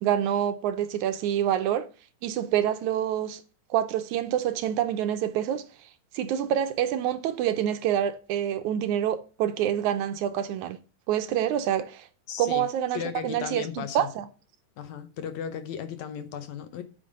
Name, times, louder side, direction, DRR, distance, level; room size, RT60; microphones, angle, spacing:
voice 1, 0.0-1.9 2.2-3.4 3.7-5.7 6.1-10.8 11.1-12.1 12.4-14.3, right 10 dB, 75° right, 1.9 m, -27 dB
voice 2, 12.3-12.7 12.9-14.1 14.8-16.8, left 8 dB, 70° left, 2.0 m, -35 dB
8.7 x 5.4 x 6.4 m
omnidirectional pair, 3.7 m